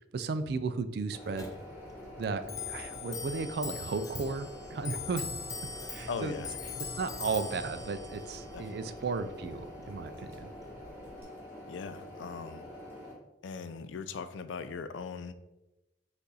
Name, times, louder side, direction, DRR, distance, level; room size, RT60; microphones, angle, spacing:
voice 1, 0.1-1.5 2.2-5.3 5.9-6.3 7.0-10.5, right 4 dB, 55° right, 11 dB, 0.3 m, -35 dB
sound 1, 1.1-13.1, left 1 dB, 15° right, 1.5 m, -47 dB
Clock, 1.3-11.2, left 5 dB, 20° left, 0.4 m, -42 dB
voice 2, 6.1-6.5 8.5-9.0 11.7-12.7 13.4-15.3, left 5 dB, 85° left, 11 dB, 0.4 m, -40 dB
5.4 x 2.5 x 3.9 m, 0.98 s
head